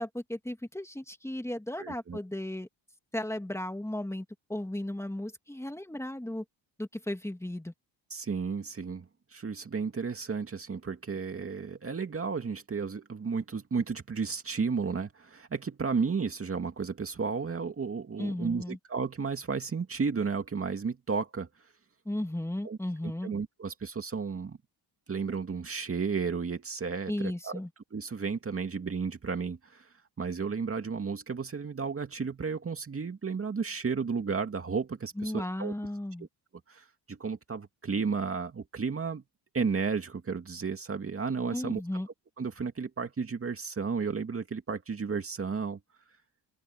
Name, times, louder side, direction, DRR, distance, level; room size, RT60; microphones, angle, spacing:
voice 1, 0.0-2.7 3.1-4.2 4.5-6.4 6.8-7.7 18.2-18.8 22.0-23.3 27.1-27.7 35.2-36.3 41.5-42.1, left 1 dB, 5° left, 2.7 m, -35 dB
voice 2, 1.8-2.2 8.1-21.5 22.6-22.8 23.0-24.6 25.1-27.6 27.9-29.9 30.2-35.7 36.7-39.2 39.5-41.8 42.4-45.8, right 5 dB, 30° right, 2.4 m, -33 dB
open air
cardioid pair, 95°, 43 cm